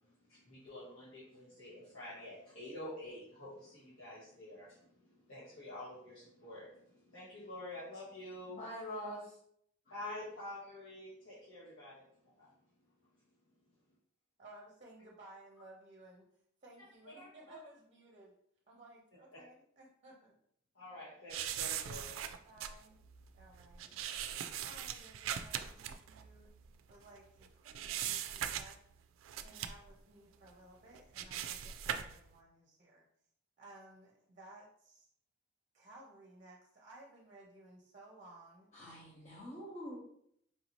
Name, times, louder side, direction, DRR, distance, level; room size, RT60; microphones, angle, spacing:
voice 1, 0.3-8.6 9.9-12.0 12.4-12.5 17.1-17.6 20.7-22.2, left 1 dB, 80° left, -10 dB, 1.3 m, -48 dB
voice 2, 8.5-9.4 38.7-40.0, equal, 35° left, -7 dB, 0.9 m, -44 dB
voice 3, 14.4-16.3 16.6-18.3 18.7-20.4 22.3-23.0 23.3-23.9 24.6-26.5 26.9-28.8 29.4-33.1 33.6-35.1 35.7-38.7, right 1 dB, 35° right, -2 dB, 0.6 m, -57 dB
sound 1, 21.3-27.2 27.4-28.9 29.2-29.9 30.5-30.6 31.0-32.2, right 9 dB, 80° right, 0.3 m, -40 dB
4.5 x 2.7 x 2.9 m, 0.70 s
head